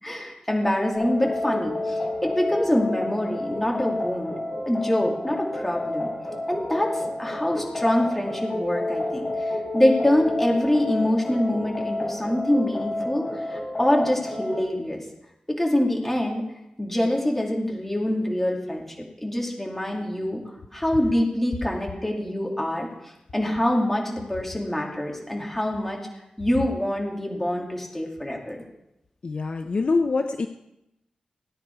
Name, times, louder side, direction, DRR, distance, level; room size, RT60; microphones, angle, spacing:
voice 1, 0.0-4.3 4.7-6.1 6.5-15.0 15.5-16.4 16.8-18.9 19.2-20.4 20.7-22.9 23.3-26.0 26.4-28.6, left 1 dB, 10° left, -1 dB, 2.7 m, -25 dB
sound 1, 0.9-14.6, left 2 dB, 30° left, 6.7 m, -30 dB
voice 2, 29.2-30.5, left 3 dB, 50° left, 6 dB, 0.7 m, -25 dB
17.0 x 9.7 x 4.7 m, 0.89 s
wide cardioid pair, 130°, 2 cm